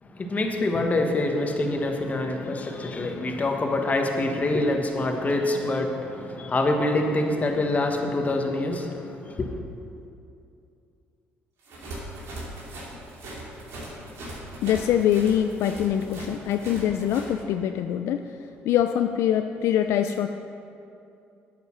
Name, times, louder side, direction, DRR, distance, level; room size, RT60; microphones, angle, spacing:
voice 1, 0.0-9.6, left 2 dB, 35° left, 3 dB, 1.4 m, -26 dB
sound 1, 11.6-17.3, right 1 dB, 75° right, 2.6 m, -39 dB
voice 2, 14.6-20.3, left 10 dB, 75° left, 7 dB, 0.4 m, -24 dB
9.3 x 8.1 x 6.0 m, 2.7 s
supercardioid pair, 65°, 5 cm